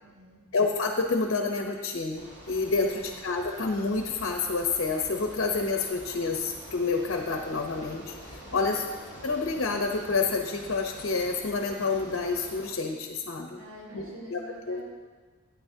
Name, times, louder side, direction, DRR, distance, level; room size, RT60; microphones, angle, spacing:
voice 1, 0.0-0.4 2.7-3.0 8.5-8.8 13.6-14.8, equal, 85° right, -7 dB, 2.5 m, -47 dB
voice 2, 0.5-8.9 9.2-13.6 13.9-14.0 14.3-14.4 14.7-14.8, left 4 dB, 65° left, 3 dB, 0.8 m, -28 dB
Bicycle, 2.1-12.7, equal, 55° right, 3.2 m, -46 dB
12.5 x 9.1 x 2.8 m, 1.4 s
head